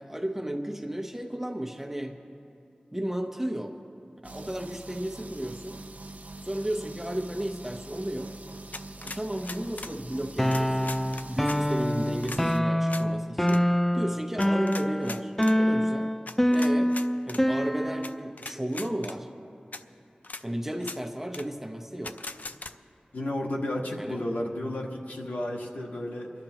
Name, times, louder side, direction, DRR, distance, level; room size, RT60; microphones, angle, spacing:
voice 1, 0.0-2.1 2.9-3.8 4.2-5.8 6.4-8.3 9.0-16.1 16.5-16.9 17.3-19.3 20.4-22.2 24.0-24.2, right 1 dB, 10° right, 3 dB, 1.0 m, -34 dB
sound 1, 4.2-12.6, right 2 dB, 70° right, 0.7 m, -44 dB
sound 2, 8.7-10.0 10.5-11.6 12.2-12.4 12.9-13.1 13.4-13.6 14.4-15.6 16.3-17.4 18.0-18.1 18.4-19.2 19.7-19.8 20.2-20.4 20.8-21.0 21.3-21.5 22.0-22.7, left 3 dB, 65° left, 0.5 m, -40 dB
sound 3, 10.4-18.3, equal, 10° left, 0.4 m, -26 dB
voice 2, 23.1-26.3, left 1 dB, 85° left, -1 dB, 1.6 m, -32 dB
28.5 x 12.0 x 3.0 m, 2.6 s
wide cardioid pair, 50°, 3 cm